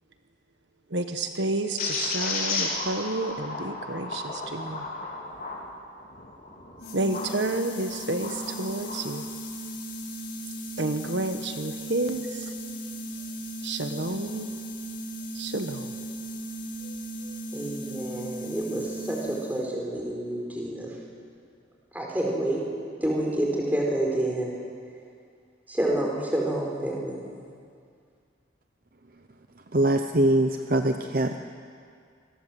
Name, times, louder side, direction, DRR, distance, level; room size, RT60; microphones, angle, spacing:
voice 1, 0.9-4.8 6.9-9.3 10.8-12.5 13.6-14.5 15.3-15.9 16.8-16.9 17.2-17.4, right 2 dB, 75° right, 6 dB, 1.3 m, -30 dB
sound 1, 1.8-7.3 7.8-9.0, left 3 dB, 50° left, 4.5 m, -33 dB
sound 2, 6.8-19.7, right 1 dB, 75° left, 5.5 m, -37 dB
voice 2, 17.5-21.0 21.9-24.6 25.7-27.2, right 1 dB, 10° right, -2 dB, 4.8 m, -28 dB
voice 3, 29.7-31.4, right 1 dB, 50° right, 6 dB, 0.9 m, -23 dB
27.0 x 20.0 x 7.8 m, 2.2 s
head